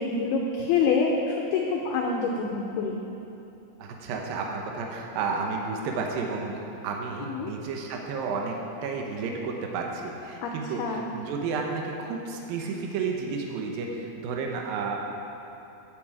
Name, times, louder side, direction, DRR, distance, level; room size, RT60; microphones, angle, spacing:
voice 1, 0.0-3.0 7.2-7.5 10.4-10.5 10.8-11.1, left 4 dB, 90° left, 0 dB, 2.2 m, -26 dB
voice 2, 3.8-15.0, right 4 dB, 90° right, 1 dB, 2.0 m, -32 dB
16.5 x 7.3 x 4.8 m, 2.9 s
omnidirectional pair, 5.6 m